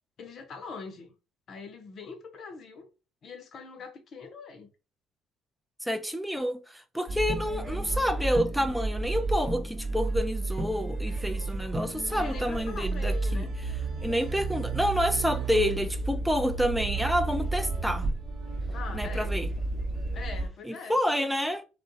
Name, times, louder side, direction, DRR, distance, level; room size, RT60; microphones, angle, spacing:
voice 1, 0.2-1.1 1.5-2.9 3.2-4.7 12.1-13.5 18.7-19.3 20.1-21.0, left 4 dB, 55° left, 0.7 m, -42 dB
voice 2, 5.8-13.5 14.0-18.1 18.9-19.5 20.6-21.6, equal, ahead, 0.5 m, -28 dB
sound 1, 7.1-20.5, right 3 dB, 35° right, 1.0 m, -31 dB
2.4 x 2.1 x 2.6 m
hypercardioid pair, 60°, 0 cm